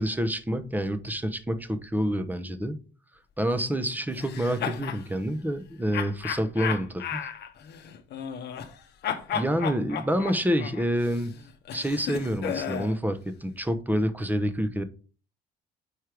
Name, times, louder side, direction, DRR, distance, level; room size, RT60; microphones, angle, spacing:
voice 1, 0.0-2.8 3.4-7.2 9.3-11.3 11.7-14.8, equal, 10° right, 0.9 m, -28 dB
sound 1, 4.2-5.0 5.9-8.8 9.0-13.0, left 8 dB, 55° left, 0.9 m, -34 dB
4.9 x 4.4 x 4.9 m
hypercardioid pair, 60°, 21 cm